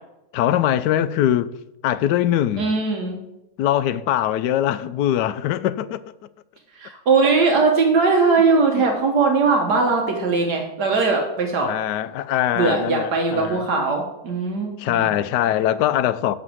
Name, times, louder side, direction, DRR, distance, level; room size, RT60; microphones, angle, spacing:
voice 1, 0.3-1.5 1.8-2.7 3.6-6.0 8.8-8.9 11.6-13.6 14.8-16.4, left 11 dB, 85° left, 1.2 m, -22 dB
voice 2, 2.6-3.2 6.7-11.7 12.6-15.1, right 4 dB, 75° right, 1.7 m, -20 dB
11.5 x 4.0 x 7.8 m
omnidirectional pair, 1.8 m